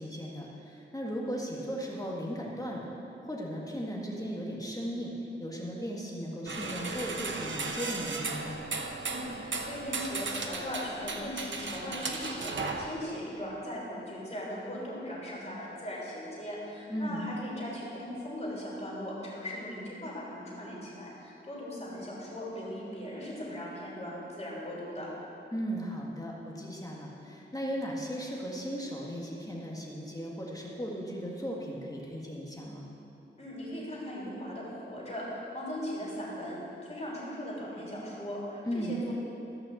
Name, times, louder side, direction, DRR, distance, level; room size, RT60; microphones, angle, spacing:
voice 1, 0.0-2.9 3.2-5.1 5.4-8.5 16.9-17.3 25.5-32.9 38.7-38.9, equal, 20° left, -3 dB, 1.7 m, -36 dB
sound 1, 6.5-12.9, right 3 dB, 70° right, 1.0 m, -36 dB
voice 2, 9.0-25.1 33.4-39.1, left 1 dB, 35° left, -6 dB, 3.4 m, -39 dB
14.5 x 5.9 x 7.7 m, 2.8 s
wide cardioid pair, 95°, 20 cm